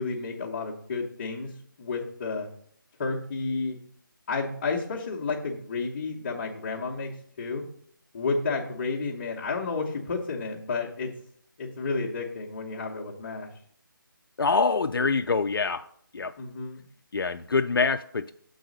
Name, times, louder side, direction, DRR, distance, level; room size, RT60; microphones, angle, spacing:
voice 1, 0.0-1.5 1.8-2.5 3.0-3.8 4.3-7.1 7.4-7.7 8.1-11.1 11.6-13.5 16.4-16.9, left 4 dB, 30° left, -5 dB, 0.9 m, -31 dB
voice 2, 14.4-15.9 16.1-16.3 17.1-18.3, left 4 dB, 90° left, 9 dB, 0.4 m, -25 dB
6.5 x 4.0 x 6.4 m, 0.64 s
figure-of-eight pair, 160°, 12 cm